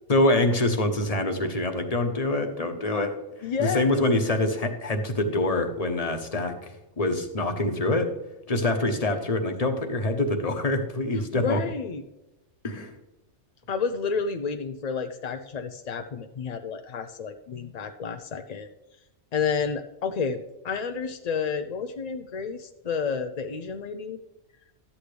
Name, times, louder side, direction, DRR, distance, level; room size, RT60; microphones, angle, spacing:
voice 1, 0.1-3.1 3.4-8.1 8.5-11.6 12.6-12.9, left 2 dB, 30° left, 5 dB, 1.0 m, -25 dB
voice 2, 3.4-4.0 11.3-12.0 13.7-18.7 19.3-24.2, left 5 dB, 60° left, 7 dB, 0.4 m, -30 dB
12.5 x 8.6 x 3.3 m, 0.93 s
omnidirectional pair, 1.3 m